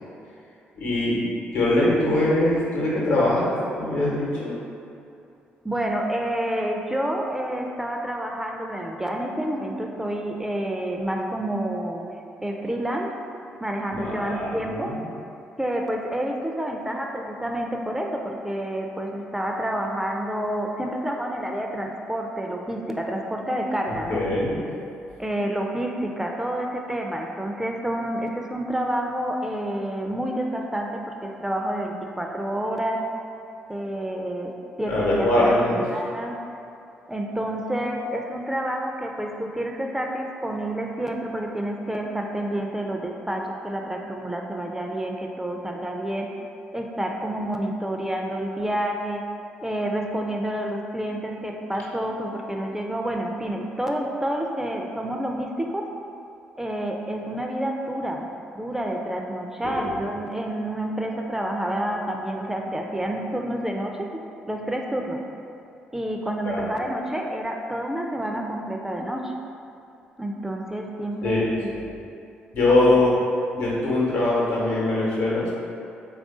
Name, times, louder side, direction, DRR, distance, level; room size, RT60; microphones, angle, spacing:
voice 1, 0.8-1.2 1.5-4.5 13.9-15.0 24.1-24.6 34.9-35.8 59.6-60.0 66.5-66.6 71.2-71.8 72.5-73.2 73.5-75.5, left 1 dB, 70° left, -6 dB, 1.0 m, -22 dB
voice 2, 5.6-12.0 12.4-13.1 13.6-15.0 15.6-24.2 25.2-33.1 33.7-34.5 34.8-36.4 37.1-46.3 46.7-49.2 49.6-55.9 56.6-58.3 58.5-64.1 64.5-65.2 65.9-69.3 70.2-71.7 72.7-72.8, right 1 dB, 10° right, 1 dB, 0.4 m, -29 dB
3.4 x 2.4 x 3.7 m, 2.6 s
hypercardioid pair, 45°, 5 cm